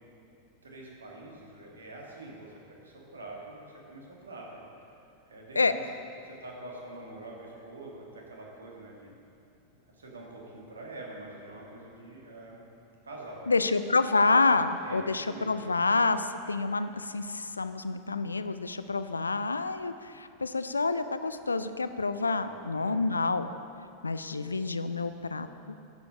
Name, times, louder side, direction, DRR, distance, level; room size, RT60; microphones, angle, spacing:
voice 1, 0.6-4.9 5.3-5.8 6.2-9.2 9.9-12.6 13.0-13.6 14.8-15.7 22.4-23.0, right 2 dB, 70° right, -2 dB, 1.8 m, -45 dB
voice 2, 13.5-23.5 24.0-25.8, left 3 dB, 80° left, 11 dB, 0.4 m, -28 dB
10.5 x 6.9 x 5.3 m, 2.6 s
figure-of-eight pair, 90°, 0 cm